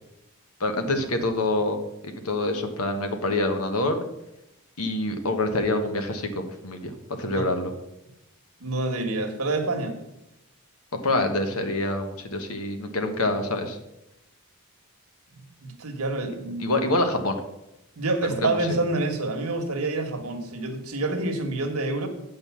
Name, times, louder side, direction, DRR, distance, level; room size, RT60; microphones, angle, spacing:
voice 1, 0.6-4.1 4.8-7.7 11.0-13.8 16.6-17.4 18.2-18.8, left 2 dB, 75° left, 6 dB, 1.2 m, -26 dB
voice 2, 8.6-10.0 15.6-16.8 18.0-22.1, right 2 dB, 75° right, 5 dB, 1.4 m, -27 dB
7.9 x 5.3 x 7.1 m, 0.86 s
head